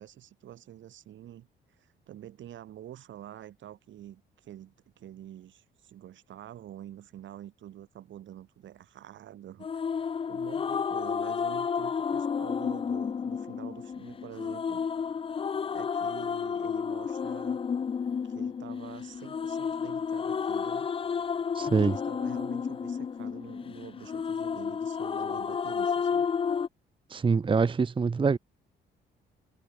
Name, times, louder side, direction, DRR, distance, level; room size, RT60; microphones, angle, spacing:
voice 1, 0.0-1.5 1.8-9.7 10.3-14.9 15.7-17.6 18.2-20.9 21.8-26.3, right 11 dB, 70° right, 2.8 m, -47 dB
sound 1, 9.6-26.7, left 6 dB, 30° left, 0.4 m, -31 dB
voice 2, 21.5-21.9 27.1-28.4, right 5 dB, 25° right, 0.8 m, -25 dB
cardioid pair, 90°, 20 cm